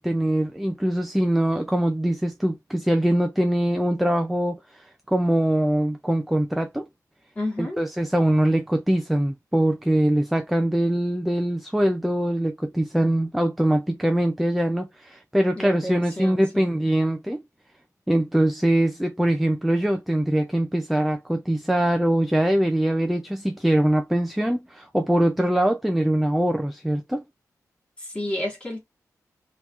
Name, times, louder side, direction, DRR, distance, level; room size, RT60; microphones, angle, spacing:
voice 1, 0.0-6.9 7.6-17.4 18.1-27.2, right 1 dB, ahead, 0.4 m, -23 dB
voice 2, 7.3-7.8 15.5-16.7 28.0-28.8, left 1 dB, 15° left, 1.7 m, -31 dB
3.6 x 3.0 x 2.4 m
wide cardioid pair, 170°, 6 cm